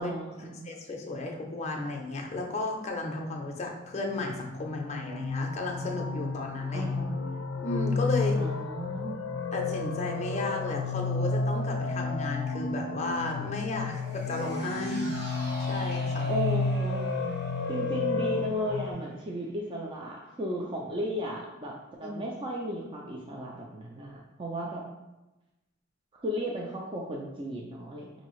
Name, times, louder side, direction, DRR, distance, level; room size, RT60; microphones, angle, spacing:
voice 1, 0.0-0.7 6.7-7.2 8.4-9.2 16.3-17.1 17.7-24.9 26.2-28.1, equal, 25° right, -2 dB, 0.4 m, -35 dB
voice 2, 0.6-6.9 7.6-8.4 9.5-16.3 22.0-22.1, left 2 dB, 35° left, 1 dB, 0.5 m, -34 dB
sound 1, 4.2-18.9, left 3 dB, 85° left, 0.4 m, -31 dB
sound 2, 13.9-20.4 20.7-20.8, right 1 dB, 55° right, 0.9 m, -48 dB
4.8 x 2.7 x 3.0 m, 1.0 s
head